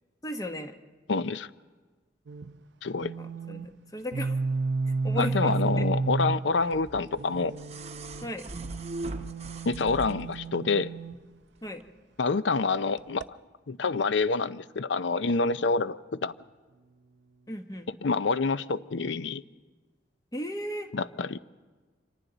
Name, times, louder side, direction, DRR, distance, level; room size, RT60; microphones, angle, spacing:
voice 1, 0.2-0.8 3.2-4.4 4.8-5.9 8.2-8.5 11.6-11.8 17.5-17.9 20.3-20.9, equal, 20° left, 6 dB, 1.0 m, -36 dB
voice 2, 1.1-1.5 2.8-3.1 5.2-7.5 9.7-10.9 12.2-13.4 13.7-16.3 18.0-19.4 20.9-21.4, left 4 dB, 75° left, 15 dB, 0.6 m, -27 dB
sound 1, 2.3-2.6 3.0-3.7 4.1-6.6 7.2-11.2 13.0-13.2, right 3 dB, 75° right, 0.6 m, -32 dB
sound 2, 6.7-10.5 11.7-11.8, right 2 dB, 35° right, 0.8 m, -40 dB
29.0 x 25.5 x 4.0 m, 1.3 s
head